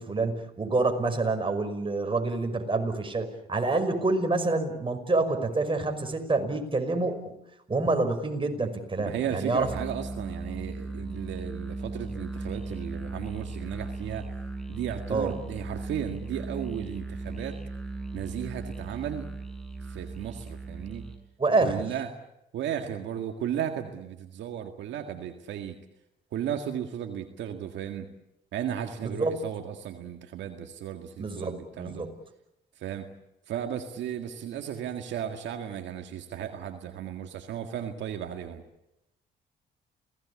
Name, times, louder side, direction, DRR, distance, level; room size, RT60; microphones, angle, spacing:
voice 1, 0.0-7.4 7.7-9.7 15.1-15.3 21.4-21.8 29.0-29.3 31.2-32.1, right 3 dB, 30° right, 5 dB, 5.5 m, -27 dB
voice 2, 9.0-14.3 14.7-17.6 18.1-19.3 19.8-21.1 21.6-22.1 22.5-25.8 26.3-28.1 28.5-32.0 32.8-33.1 33.5-38.6, right 9 dB, 80° right, 5 dB, 1.9 m, -35 dB
Musical instrument, 9.5-21.3, right 3 dB, ahead, 7.1 m, -37 dB
28.5 x 18.0 x 8.5 m, 0.86 s
supercardioid pair, 65°, 19 cm